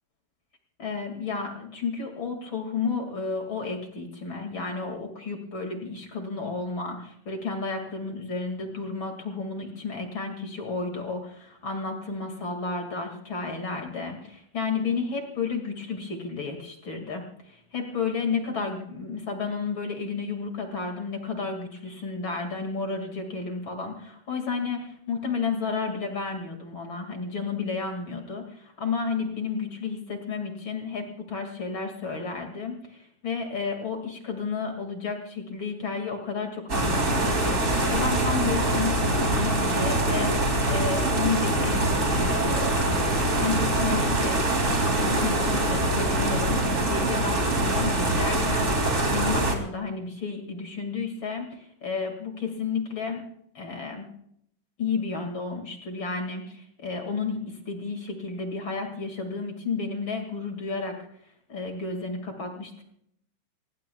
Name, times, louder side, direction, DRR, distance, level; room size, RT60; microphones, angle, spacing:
voice 1, 0.8-43.0 43.4-44.4 45.0-53.3 53.5-54.1 54.8-60.9 61.5-62.8, left 4 dB, 45° left, 4 dB, 1.6 m, -32 dB
sound 1, 36.7-49.5, right 1 dB, 30° right, 1.5 m, -24 dB
25.5 x 19.0 x 2.3 m, 0.69 s
omnidirectional pair, 5.6 m